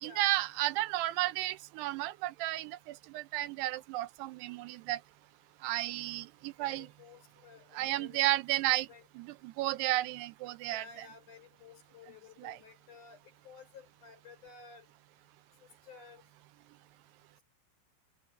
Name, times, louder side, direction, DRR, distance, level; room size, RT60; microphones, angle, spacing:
voice 1, 0.0-5.0 5.6-6.9 7.7-8.9 9.2-11.1 12.4-12.6, right 16 dB, 80° right, 2.7 m, -33 dB
voice 2, 6.6-8.3 8.7-9.1 10.7-14.9 15.8-16.2, left 5 dB, 50° left, 7.2 m, -54 dB
omnidirectional pair, 4.8 m